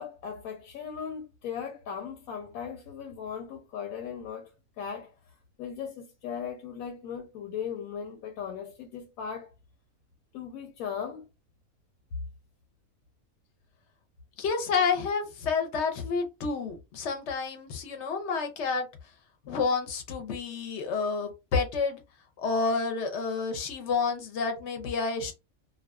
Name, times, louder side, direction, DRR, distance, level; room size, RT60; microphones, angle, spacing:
voice 1, 0.0-4.5 4.8-5.1 5.6-9.5 10.3-11.3, left 7 dB, 85° left, 1.0 m, -38 dB
voice 2, 14.4-18.9 19.5-22.0 22.4-25.3, left 4 dB, 65° left, 0.8 m, -29 dB
2.4 x 2.2 x 2.2 m
omnidirectional pair, 1.5 m